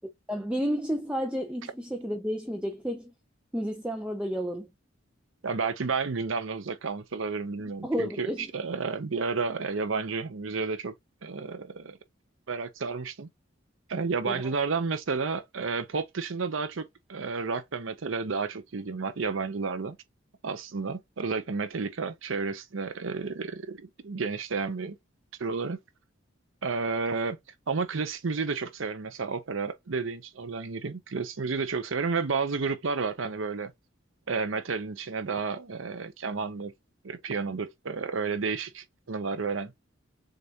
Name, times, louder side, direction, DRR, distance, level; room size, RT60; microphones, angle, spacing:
voice 1, 0.3-3.1 3.5-4.7 7.8-8.5 14.2-14.4, equal, 5° right, 0.6 m, -31 dB
voice 2, 5.4-10.9 11.2-12.0 12.5-13.3 13.9-20.0 20.4-25.0 25.4-25.8 26.6-27.4 27.7-33.7 34.3-36.7 37.0-39.7, right 4 dB, 85° right, 0.7 m, -31 dB
6.5 x 2.5 x 2.8 m
head